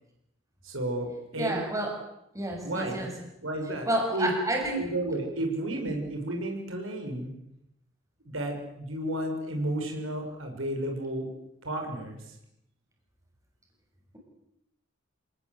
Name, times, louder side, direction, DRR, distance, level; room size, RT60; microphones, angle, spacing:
voice 1, 0.6-1.6 2.6-3.0 3.4-4.3 4.8-7.3 8.2-11.3 11.6-12.2, right 1 dB, 80° right, 3 dB, 6.3 m, -32 dB
voice 2, 1.4-1.9 2.3-3.1 3.8-4.8, right 1 dB, 15° right, 1 dB, 6.6 m, -29 dB
27.0 x 19.0 x 8.1 m, 0.81 s
head